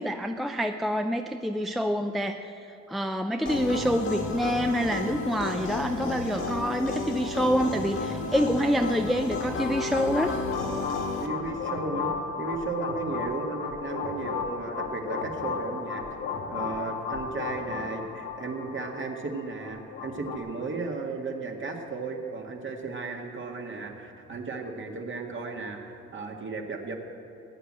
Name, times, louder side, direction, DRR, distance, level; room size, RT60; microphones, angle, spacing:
voice 1, 0.0-10.4, equal, ahead, 6 dB, 0.5 m, -27 dB
sound 1, 3.4-11.3, left 3 dB, 45° left, 1.9 m, -32 dB
sound 2, 9.0-20.4, left 5 dB, 90° left, 1.6 m, -35 dB
voice 2, 11.2-16.0 16.5-26.9, right 3 dB, 40° right, 2 dB, 2.0 m, -35 dB
16.5 x 9.3 x 7.6 m, 2.9 s
cardioid pair, 90°, 30 cm